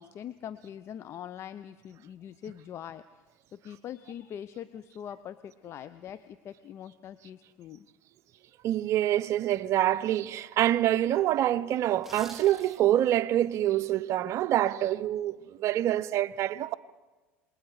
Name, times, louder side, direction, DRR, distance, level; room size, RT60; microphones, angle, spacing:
voice 1, 0.0-3.0 3.5-7.9, left 9 dB, 45° left, 0.7 m, -43 dB
voice 2, 8.6-16.7, right 12 dB, 50° right, 0.7 m, -26 dB
sound 1, 12.0-13.1 13.5-13.6, right 1 dB, 5° right, 2.0 m, -47 dB
27.5 x 21.0 x 4.9 m
hypercardioid pair, 90°, 6 cm